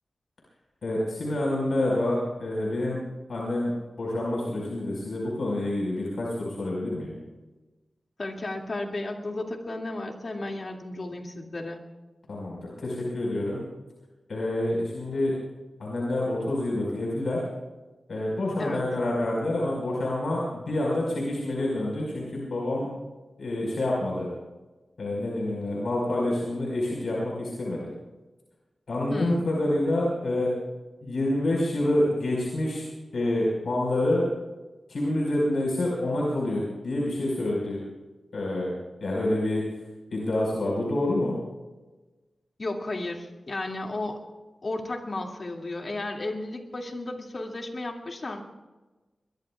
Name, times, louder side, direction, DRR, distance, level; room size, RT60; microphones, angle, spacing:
voice 1, 0.8-3.0 3.3-3.7 4.0-7.1 12.3-13.6 14.3-15.3 15.8-17.4 18.1-22.9 23.4-24.3 25.0-27.9 28.9-30.5 31.0-32.8 33.1-34.2 34.9-37.8 38.3-38.7 39.0-39.6 40.1-41.4, left 1 dB, 75° left, -3 dB, 5.1 m, -27 dB
voice 2, 8.2-11.8 18.6-18.8 29.1-29.5 42.6-44.2 44.6-48.4, left 2 dB, 50° left, 1 dB, 2.4 m, -33 dB
22.5 x 22.0 x 2.4 m, 1.2 s
wide cardioid pair, 90°, 0 cm